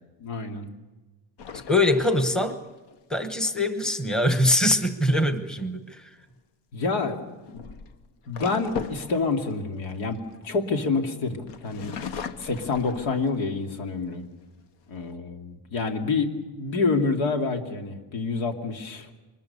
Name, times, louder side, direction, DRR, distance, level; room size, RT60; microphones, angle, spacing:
voice 1, 0.2-0.7 6.7-7.6 8.3-12.0 12.4-14.3 14.9-19.1, left 4 dB, 85° left, 4 dB, 2.7 m, -28 dB
sound 1, 1.4-3.0 5.9-6.2 7.2-11.0 11.5-13.6 14.1-14.2 14.6-15.1, left 6 dB, 60° left, 1.3 m, -39 dB
voice 2, 1.7-2.6 3.1-6.1, left 1 dB, ahead, 8 dB, 1.1 m, -23 dB
24.5 x 21.0 x 6.9 m, 1.2 s
cardioid pair, 150°, 46 cm